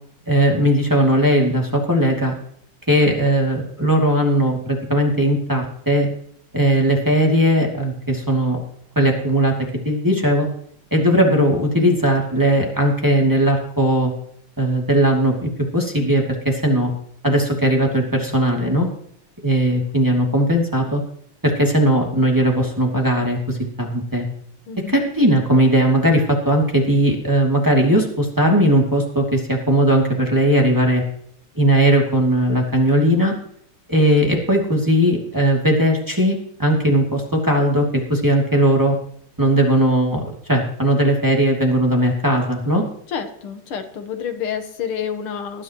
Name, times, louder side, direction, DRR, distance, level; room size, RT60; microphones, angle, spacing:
voice 1, 0.3-2.3 2.9-6.1 6.5-8.6 9.0-9.5 9.8-10.5 10.9-14.1 14.6-16.9 17.2-18.9 19.4-21.0 21.4-24.2 24.9-31.0 31.6-33.4 33.9-38.9 39.4-42.8, right 1 dB, 10° right, -1 dB, 2.5 m, -18 dB
voice 2, 24.7-25.0 43.1-45.6, left 7 dB, 90° left, 7 dB, 2.3 m, -29 dB
19.5 x 11.0 x 3.1 m, 0.65 s
omnidirectional pair, 2.3 m